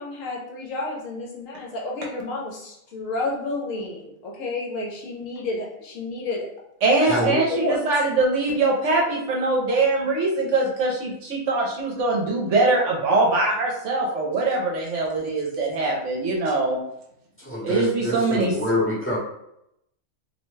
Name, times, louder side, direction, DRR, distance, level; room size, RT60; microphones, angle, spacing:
voice 1, 0.0-6.5 7.2-7.8, left 2 dB, 70° left, -1 dB, 1.0 m, -30 dB
voice 2, 6.8-16.8 17.6-18.6, right 3 dB, 65° right, -2 dB, 0.9 m, -22 dB
voice 3, 17.4-19.2, left 1 dB, 10° left, -7 dB, 0.7 m, -26 dB
2.6 x 2.1 x 3.1 m, 0.80 s
omnidirectional pair, 1.5 m